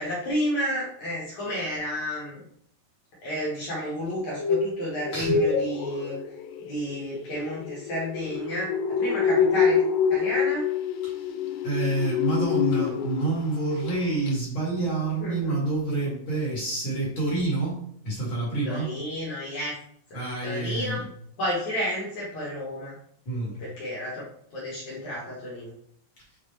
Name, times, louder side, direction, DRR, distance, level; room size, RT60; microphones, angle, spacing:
voice 1, 0.0-2.4 3.2-6.2 6.6-9.8 10.1-10.7 15.2-15.6 18.6-19.7 20.1-21.0 21.4-22.9 23.6-24.3 24.5-25.7, equal, 65° left, -6 dB, 1.8 m, -31 dB
sound 1, 4.1-13.4 13.7-14.0 14.3-14.4, left 6 dB, 85° left, 2.5 m, -26 dB
voice 2, 11.6-18.9 20.1-21.0 23.3-23.6, right 3 dB, 45° left, -5 dB, 1.8 m, -28 dB
7.2 x 4.0 x 3.2 m, 0.67 s
omnidirectional pair, 5.2 m